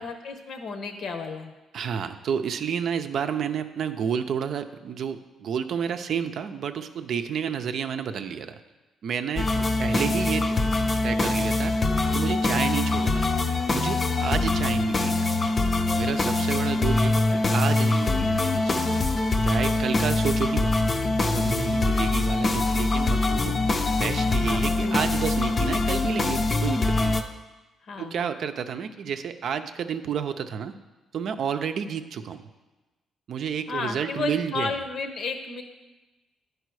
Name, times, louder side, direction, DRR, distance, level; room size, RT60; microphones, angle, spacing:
voice 1, 0.0-1.5 17.3-17.5 24.5-25.0 27.8-28.3 33.7-35.6, left 4 dB, 65° left, 6 dB, 0.9 m, -33 dB
voice 2, 1.7-8.6 9.0-10.5 11.0-11.7 12.1-13.3 13.7-15.4 16.0-18.8 19.4-20.7 21.2-23.6 24.0-27.2 28.0-30.7 31.1-32.5 33.3-34.7, right 7 dB, 65° right, 8 dB, 0.5 m, -30 dB
sound 1, 9.4-27.2, left 2 dB, 35° left, 0.5 m, -24 dB
10.0 x 4.8 x 4.7 m, 1.2 s
cardioid pair, 90°, 0 cm